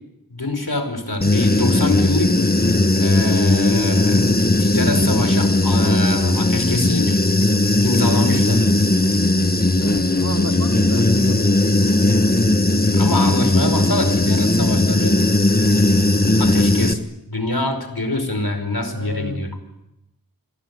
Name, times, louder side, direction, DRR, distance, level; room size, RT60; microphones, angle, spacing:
voice 1, 0.3-2.4 3.0-7.2 7.8-8.6 12.9-15.2 16.4-19.5, left 2 dB, 85° left, 8 dB, 5.1 m, -25 dB
Human voice / Buzz, 1.2-16.9, left 2 dB, 25° left, 1.5 m, -17 dB
voice 2, 9.8-11.8 18.8-19.6, right 1 dB, 45° right, 4 dB, 3.0 m, -32 dB
27.5 x 21.5 x 9.6 m, 0.91 s
wide cardioid pair, 45°, 36 cm